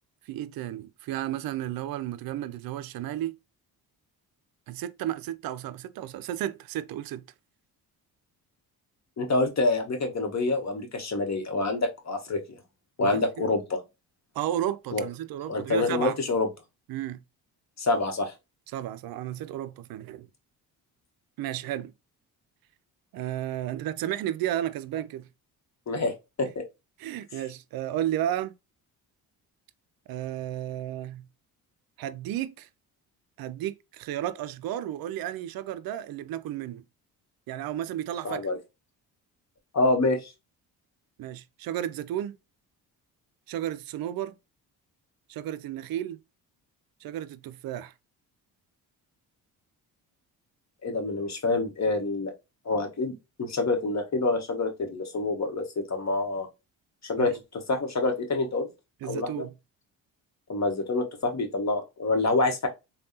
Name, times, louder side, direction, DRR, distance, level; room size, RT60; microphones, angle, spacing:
voice 1, 0.3-3.4 4.7-7.2 13.0-13.5 14.4-16.2 16.9-17.2 18.7-20.3 21.4-21.9 23.1-25.3 27.0-28.5 30.1-31.3 32.0-32.7 33.4-36.8 37.5-38.5 41.2-42.4 43.5-44.3 45.3-46.2 47.0-47.9 57.2-57.3 59.0-59.5, right 12 dB, 55° right, 0.5 m, -33 dB
voice 2, 9.2-12.4 13.0-13.8 14.9-15.0 15.5-16.5 17.8-18.3 25.9-26.1 26.4-26.6 38.2-38.6 39.7-40.3 50.8-52.3 52.6-53.1 53.4-56.5 57.0-58.7 59.0-59.4 60.5-62.7, left 3 dB, 40° left, 1.1 m, -27 dB
3.4 x 2.3 x 2.7 m
supercardioid pair, 55°, 43 cm